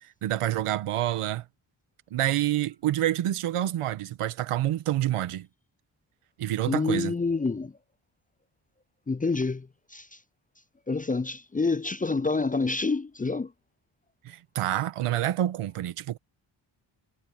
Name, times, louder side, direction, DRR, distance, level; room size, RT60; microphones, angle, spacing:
voice 1, 0.0-1.4 2.1-5.5 6.4-7.1 14.2-16.2, right 13 dB, 85° right, 1.4 m, -28 dB
voice 2, 6.7-7.7 9.1-9.7 9.9-10.1 10.9-13.5, left 3 dB, 15° left, 0.5 m, -27 dB
supercardioid pair, 45°, 50 cm